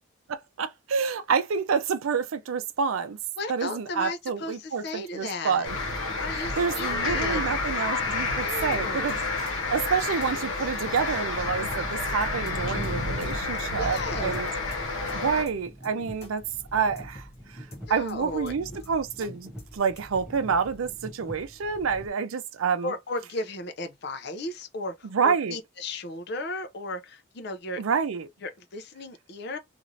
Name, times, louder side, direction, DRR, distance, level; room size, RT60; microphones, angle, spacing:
voice 1, 0.3-3.2 3.5-5.8 6.6-9.2 9.7-14.5 15.1-16.4 16.7-17.3 17.5-22.9 25.0-25.6 27.8-28.3, right 6 dB, 80° right, 0.5 m, -28 dB
voice 2, 3.4-5.7 6.2-7.5 8.4-9.2 13.8-14.3 17.9-18.8 22.8-27.8 28.4-29.6, left 2 dB, 50° left, 0.5 m, -35 dB
sound 1, 5.6-15.4, left 3 dB, 70° left, 1.1 m, -29 dB
sound 2, 8.7-9.1 9.5-9.6 9.8-9.9 10.2-10.3 10.6-10.7 11.0-11.4 11.7-12.1 12.5-12.6 12.8-12.9 13.2-13.3 13.6-13.7 14.0-14.4 14.7-15.1 15.5-15.6 15.8-15.9 16.2-16.3 16.6-16.7 17.0-17.4 17.7-18.1 18.5-18.6 18.8-18.9 19.2-19.3 19.6-19.7 20.0-20.4, left 2 dB, 30° left, 0.8 m, -48 dB
sound 3, 14.2-22.1, equal, 5° right, 0.8 m, -45 dB
3.1 x 2.5 x 2.6 m
head